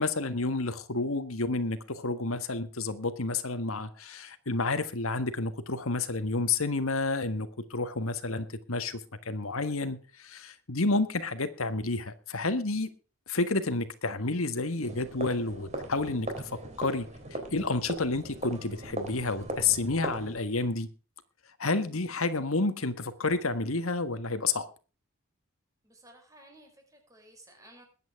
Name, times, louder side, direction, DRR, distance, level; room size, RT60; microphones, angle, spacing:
voice 1, 0.0-9.0 9.2-12.9 13.3-20.9 21.6-24.7, left 3 dB, 80° left, 10 dB, 1.6 m, -30 dB
sound 1, 14.8-20.3, right 1 dB, 30° right, 3.7 m, -39 dB
voice 2, 25.8-27.9, right 1 dB, 15° right, 3 dB, 5.2 m, -55 dB
21.5 x 9.2 x 3.6 m, 0.36 s
head